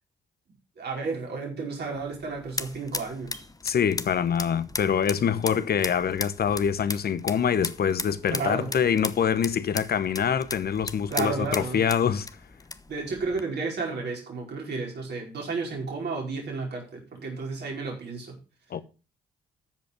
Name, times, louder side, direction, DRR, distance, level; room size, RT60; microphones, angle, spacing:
voice 1, 0.8-3.5 8.3-8.7 11.1-11.8 12.9-18.4, right 4 dB, 65° right, 4.9 m, -32 dB
sound 1, 1.8-13.4, left 3 dB, 20° left, 1.0 m, -38 dB
voice 2, 3.6-12.3 18.7-18.8, left 7 dB, 55° left, 1.0 m, -25 dB
14.0 x 5.2 x 6.0 m
hypercardioid pair, 45°, 19 cm